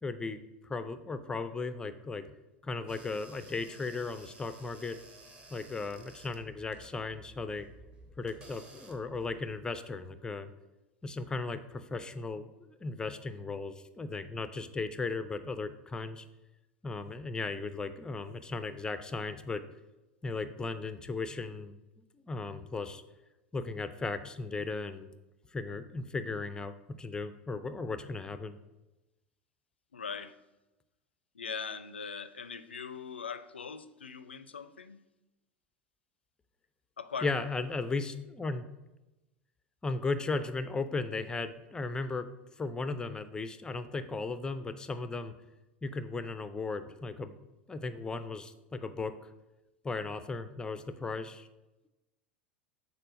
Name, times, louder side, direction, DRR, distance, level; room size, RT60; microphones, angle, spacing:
voice 1, 0.0-2.3 2.6-5.0 5.5-7.7 8.2-10.5 11.0-16.3 16.8-19.6 20.2-21.8 22.2-23.0 23.5-25.1 25.5-28.6 37.2-38.6 39.8-42.3 42.6-45.3 45.8-47.3 47.7-49.2 49.8-51.5, left 3 dB, 15° left, 11 dB, 0.5 m, -36 dB
sound 1, 2.9-9.6, right 2 dB, 15° right, 1.2 m, -55 dB
voice 2, 29.9-30.4 31.3-35.0 37.0-37.3, left 5 dB, 75° left, 13 dB, 0.4 m, -41 dB
6.7 x 4.2 x 6.2 m, 1.0 s
figure-of-eight pair, 80°, 6 cm